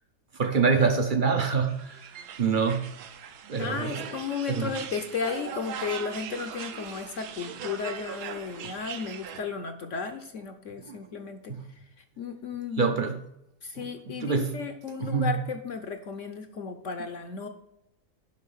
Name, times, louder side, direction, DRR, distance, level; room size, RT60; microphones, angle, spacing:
voice 1, 0.3-2.9 3.5-4.1 4.5-4.7 8.6-8.7 10.9-11.0 11.5-11.6 12.8-13.2 13.8-13.9 14.2-14.6 15.0-15.3, right 5 dB, 50° right, 6 dB, 0.6 m, -26 dB
sound 1, 1.7-9.4, right 8 dB, 70° right, 1.2 m, -40 dB
voice 2, 3.6-11.5 12.2-12.9 13.6-17.5, left 5 dB, 60° left, 7 dB, 0.8 m, -34 dB
10.5 x 3.9 x 5.6 m, 0.83 s
omnidirectional pair, 1.9 m